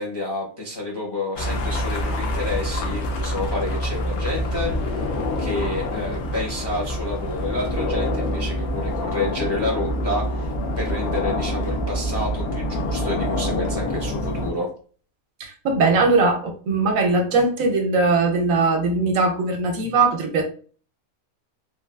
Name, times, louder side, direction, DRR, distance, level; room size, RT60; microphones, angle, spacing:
voice 1, 0.0-5.0 5.4-10.5 10.8-14.7, left 2 dB, 35° left, -3 dB, 0.4 m, -29 dB
sound 1, 1.4-14.5, left 1 dB, 85° left, 1.1 m, -26 dB
voice 2, 15.4-20.4, right 3 dB, 70° right, 3 dB, 1.0 m, -20 dB
3.4 x 2.3 x 2.2 m, 0.40 s
omnidirectional pair, 1.5 m